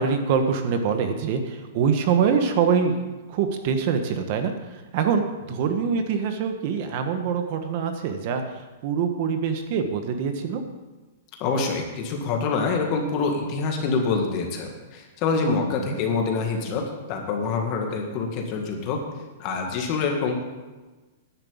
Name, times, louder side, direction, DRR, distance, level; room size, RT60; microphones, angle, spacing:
voice 1, 0.0-10.6 15.8-15.9, right 6 dB, 35° right, 6 dB, 1.1 m, -24 dB
voice 2, 11.4-19.0 19.4-20.4, left 4 dB, 30° left, 2 dB, 1.9 m, -26 dB
10.5 x 7.4 x 8.6 m, 1.2 s
supercardioid pair, 170°, 0 cm